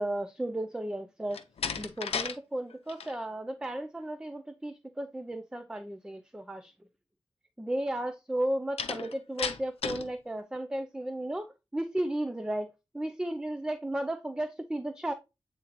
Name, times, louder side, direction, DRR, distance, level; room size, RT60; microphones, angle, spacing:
voice 1, 0.0-1.4 1.8-6.7 7.6-15.1, right 1 dB, 10° right, 0.4 m, -34 dB
Slam, 1.3-2.4 2.7-3.1 8.8-10.1, left 6 dB, 80° left, 0.6 m, -34 dB
8.5 x 3.7 x 3.0 m
wide cardioid pair, 115°, 10 cm